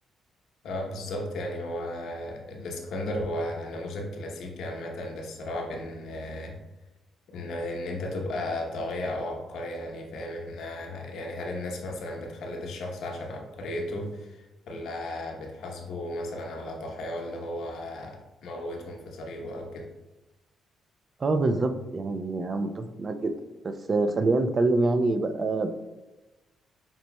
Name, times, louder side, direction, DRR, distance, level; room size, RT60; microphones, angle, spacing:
voice 1, 0.6-6.6 7.3-19.9, left 1 dB, 75° left, 1 dB, 0.8 m, -35 dB
voice 2, 21.2-23.3 23.6-25.7, right 2 dB, 40° right, 8 dB, 0.4 m, -25 dB
7.1 x 3.0 x 2.2 m, 1.0 s
cardioid pair, 90°, 0 cm